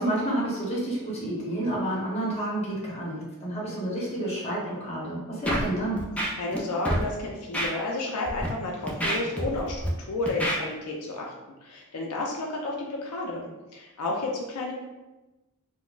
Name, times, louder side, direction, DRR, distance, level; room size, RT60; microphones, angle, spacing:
voice 1, 0.0-6.0, right 1 dB, 30° left, -5 dB, 0.9 m, -29 dB
Scratching (performance technique), 5.4-5.7 6.0-6.6 6.8-7.0 7.5-7.7 8.2-8.5 8.9-9.9 10.3-10.6, equal, 5° left, 0.4 m, -27 dB
voice 2, 6.3-11.3 11.6-14.7, left 2 dB, 80° left, -1 dB, 0.4 m, -31 dB
3.8 x 2.0 x 2.4 m, 1.1 s
head